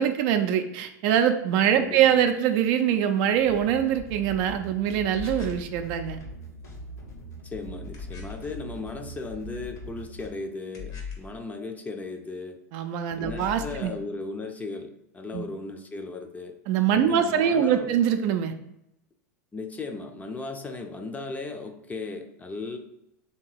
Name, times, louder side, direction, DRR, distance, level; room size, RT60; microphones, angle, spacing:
voice 1, 0.0-6.2 12.7-13.9 15.3-15.5 16.7-18.5, right 9 dB, 55° right, 7 dB, 0.4 m, -23 dB
voice 2, 1.8-2.2 7.4-12.6 13.2-16.6 17.0-17.9 19.5-22.8, left 3 dB, 15° left, 5 dB, 0.5 m, -36 dB
sound 1, 3.3-10.3, right 1 dB, 85° left, 1.3 m, -42 dB
sound 2, 5.1-5.7 7.9-8.5 10.7-11.4 13.2-13.9, left 7 dB, 60° left, 1.1 m, -39 dB
3.4 x 2.8 x 4.7 m, 0.80 s
hypercardioid pair, 100°, 9 cm